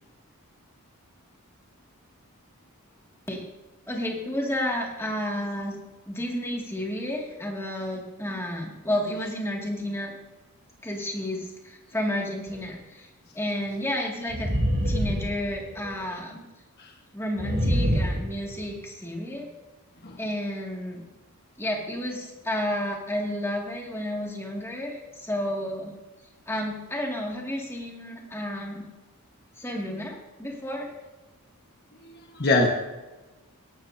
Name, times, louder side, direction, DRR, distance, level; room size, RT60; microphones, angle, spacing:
voice 1, 3.9-5.8 6.1-10.1 10.8-13.1 13.3-14.5 14.8-16.4 17.1-19.5 20.2-21.0 21.6-25.9 26.5-28.9 29.6-30.9, left 1 dB, 10° left, -1 dB, 2.3 m, -31 dB
sound 1, 12.5-12.6 14.3-15.9 17.4-18.7, equal, 50° right, 3.4 m, -25 dB
voice 2, 32.0-32.7, left 2 dB, 45° left, 1 dB, 1.4 m, -24 dB
18.0 x 11.5 x 2.8 m, 1.1 s
head